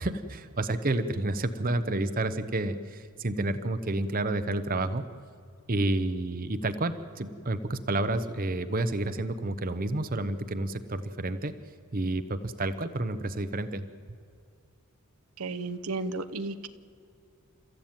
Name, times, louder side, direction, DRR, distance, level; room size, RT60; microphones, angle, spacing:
voice 1, 0.0-5.0 5.7-11.5 11.9-13.8, right 2 dB, 40° right, 10 dB, 0.9 m, -30 dB
voice 2, 15.4-16.7, right 3 dB, 75° right, 10 dB, 1.0 m, -33 dB
30.0 x 14.0 x 9.0 m, 2.4 s
head